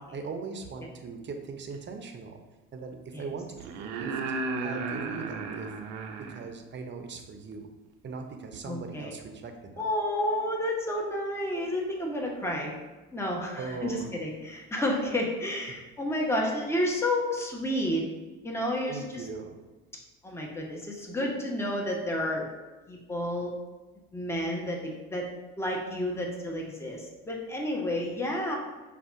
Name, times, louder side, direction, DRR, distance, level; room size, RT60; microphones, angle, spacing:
voice 1, 0.1-2.4 2.7-4.1 4.6-5.7 6.2-7.7 8.0-9.9 13.6-14.1 15.7-15.8 18.9-19.6, right 4 dB, 40° right, 5 dB, 0.7 m, -39 dB
sound 1, 1.7-1.8 3.6-6.5 8.5-8.6, right 4 dB, 75° right, 0.6 m, -34 dB
voice 2, 8.6-9.1 9.8-12.8 13.1-18.0 18.4-19.3 20.2-22.5 22.9-23.5 24.1-25.3 25.6-28.6, left 1 dB, 10° left, -1 dB, 1.0 m, -30 dB
5.1 x 2.4 x 3.6 m, 1.2 s
supercardioid pair, 70°, 30 cm